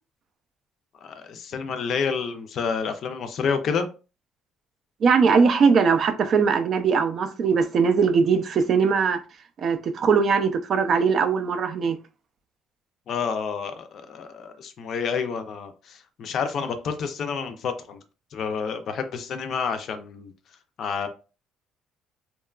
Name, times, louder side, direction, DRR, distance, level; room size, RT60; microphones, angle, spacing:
voice 1, 1.0-3.9 13.1-18.0 18.3-20.3 20.8-21.1, left 6 dB, 55° left, 0.4 m, -29 dB
voice 2, 5.0-9.2 9.6-12.0, right 5 dB, 45° right, 0.3 m, -20 dB
2.8 x 2.2 x 2.3 m
cardioid pair, 125°, 0 cm